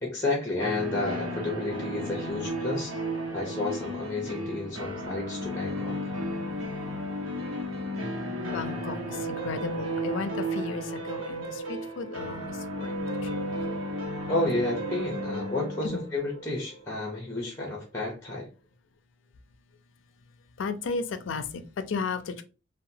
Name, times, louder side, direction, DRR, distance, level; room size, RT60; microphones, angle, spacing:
voice 1, 0.0-3.0 3.3-6.0 14.3-18.5, left 2 dB, 15° left, -1 dB, 0.7 m, -31 dB
sound 1, 0.6-17.3, equal, 85° right, 0.9 m, -34 dB
voice 2, 8.4-12.9 13.2-13.4 15.8-16.0 20.6-22.4, left 4 dB, 75° left, 10 dB, 0.4 m, -34 dB
2.8 x 2.1 x 2.6 m, 0.32 s
head